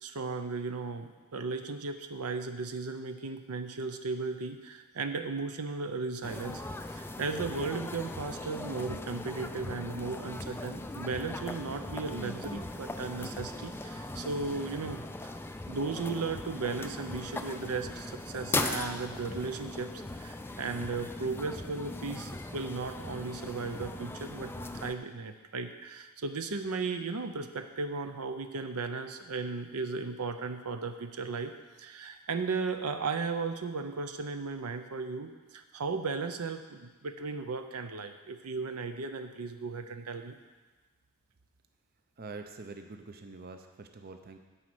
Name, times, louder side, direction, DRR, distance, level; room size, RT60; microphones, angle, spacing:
voice 1, 0.0-6.6 6.9-15.4 15.7-31.5 31.8-40.4, right 4 dB, 80° right, 8 dB, 0.7 m, -36 dB
sound 1, 6.2-24.9, left 2 dB, 10° left, 0.3 m, -39 dB
voice 2, 42.2-44.4, right 3 dB, 45° right, 6 dB, 0.6 m, -45 dB
11.0 x 4.3 x 7.7 m, 1.3 s
head